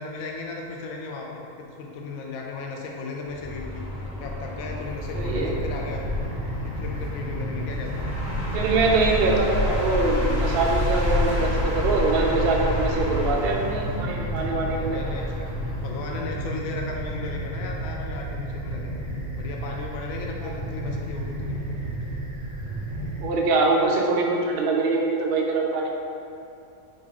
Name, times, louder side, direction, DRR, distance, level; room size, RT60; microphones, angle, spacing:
voice 1, 0.0-3.9 4.2-6.0 6.6-8.1 14.0-14.3 14.6-15.4 15.8-21.6, left 4 dB, 70° left, 0 dB, 0.9 m, -36 dB
sound 1, 3.3-15.9, left 2 dB, 40° left, 1.3 m, -29 dB
sound 2, 4.9-23.2, right 1 dB, 20° right, 0.5 m, -33 dB
voice 2, 5.1-5.5 8.5-15.5 20.4-20.5 23.2-25.9, right 3 dB, 85° right, 0 dB, 0.5 m, -24 dB
5.1 x 2.6 x 3.6 m, 2.7 s
omnidirectional pair, 1.6 m